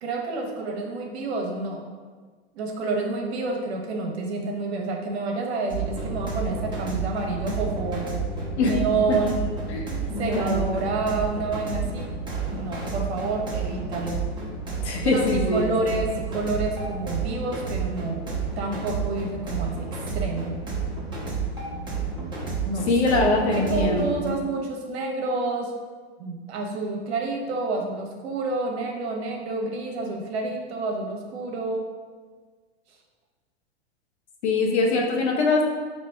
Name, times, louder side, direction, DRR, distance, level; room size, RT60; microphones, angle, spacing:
voice 1, 0.0-1.8 2.5-8.2 8.6-9.6 10.2-12.1 12.5-14.3 15.0-15.2 15.5-18.3 18.6-20.6 22.6-25.7 26.2-31.9, right 3 dB, 65° right, 1 dB, 0.9 m, -29 dB
sound 1, 5.7-24.3, right 4 dB, 15° right, 1.0 m, -31 dB
voice 2, 10.1-10.7 11.8-11.9 14.8-15.9 22.9-24.3 34.4-35.6, left 3 dB, 75° left, 1 dB, 0.9 m, -23 dB
3.1 x 2.8 x 4.5 m, 1.5 s
hypercardioid pair, 100°, 34 cm